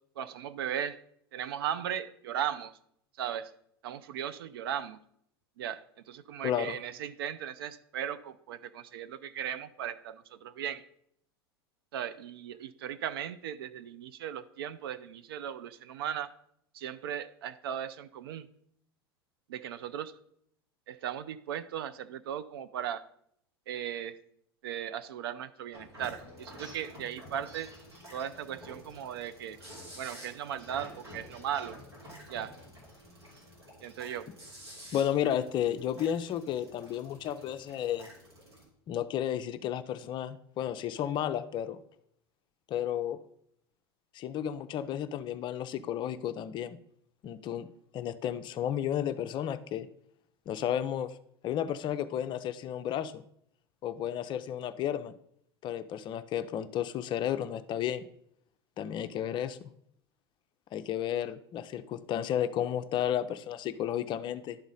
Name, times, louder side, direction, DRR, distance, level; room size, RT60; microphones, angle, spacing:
voice 1, 0.2-1.0 1.3-2.8 3.2-3.5 3.8-5.0 5.6-10.9 11.9-16.3 16.7-18.5 19.5-20.1 20.9-23.0 23.7-24.2 24.6-27.7 28.1-29.6 29.9-31.8 32.3-32.6 33.8-34.3, right 9 dB, 70° right, 13 dB, 0.4 m, -37 dB
voice 2, 6.4-6.8 34.9-38.1 38.9-41.8 42.7-43.2 44.1-46.8 47.2-47.7 47.9-49.9 50.5-51.1 51.4-53.2 53.8-55.1 55.6-58.0 58.8-59.7 60.7-64.6, left 10 dB, 35° left, 12 dB, 0.5 m, -32 dB
sound 1, 25.7-38.6, equal, 90° right, 2.8 m, -50 dB
11.0 x 4.0 x 3.8 m, 0.70 s
figure-of-eight pair, 80°, 13 cm